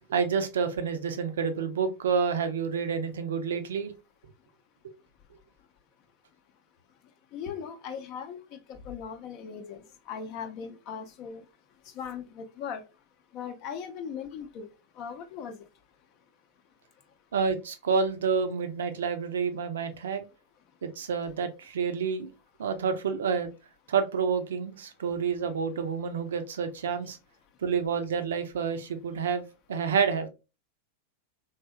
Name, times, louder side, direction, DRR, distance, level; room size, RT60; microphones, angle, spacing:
voice 1, 0.1-3.9 17.3-20.3 20.8-22.3 22.6-23.5 23.9-27.2 27.6-29.4 29.7-30.3, right 6 dB, 65° right, 0.5 m, -28 dB
voice 2, 7.3-8.4 8.7-9.8 10.1-11.4 12.0-12.8 13.3-14.7 15.0-15.5, left 7 dB, 40° left, 0.5 m, -38 dB
3.3 x 2.7 x 2.2 m
figure-of-eight pair, 90°, 0 cm